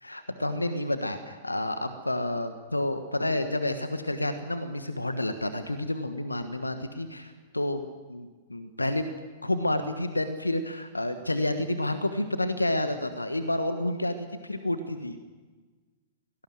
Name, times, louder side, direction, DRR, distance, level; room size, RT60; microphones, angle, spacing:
voice 1, 0.0-9.1 9.4-15.2, left 1 dB, 90° left, 9 dB, 1.4 m, -30 dB
23.5 x 18.0 x 7.9 m, 1.3 s
figure-of-eight pair, 105°, 0 cm